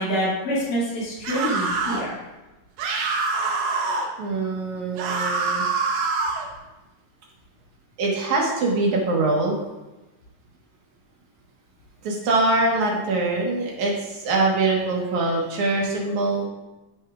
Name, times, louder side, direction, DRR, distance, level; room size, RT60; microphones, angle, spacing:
voice 1, 0.0-2.2, equal, 75° left, -7 dB, 4.1 m, -26 dB
sound 1, 1.2-2.1 2.8-4.1 5.0-6.5, right 4 dB, 85° right, 2.7 m, -25 dB
voice 2, 4.2-5.6 8.0-9.6 12.0-16.5, right 2 dB, 70° right, -2 dB, 2.6 m, -23 dB
14.5 x 6.3 x 2.4 m, 1.1 s
omnidirectional pair, 3.7 m